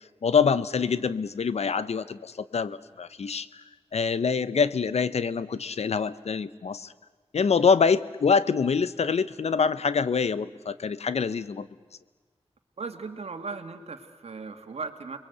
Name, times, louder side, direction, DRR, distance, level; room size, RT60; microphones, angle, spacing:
voice 1, 0.2-3.6 3.9-6.9 7.3-11.7, left 5 dB, 75° left, 15 dB, 0.8 m, -25 dB
voice 2, 12.8-15.2, right 4 dB, 70° right, 5 dB, 2.0 m, -37 dB
29.5 x 22.0 x 8.0 m, 1.5 s
wide cardioid pair, 110°, 11 cm